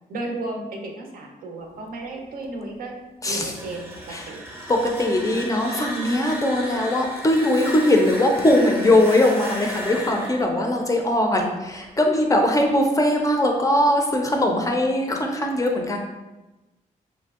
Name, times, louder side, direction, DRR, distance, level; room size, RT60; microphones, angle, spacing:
voice 1, 0.1-3.0 3.2-4.4, right 2 dB, 80° right, 2 dB, 0.5 m, -34 dB
voice 2, 3.2-3.5 4.1-4.3 4.7-16.0, left 1 dB, 20° left, 2 dB, 0.4 m, -20 dB
sound 1, 3.4-12.2, equal, 15° right, 0.6 m, -35 dB
3.1 x 2.6 x 2.4 m, 1.1 s
cardioid pair, 90°, 15 cm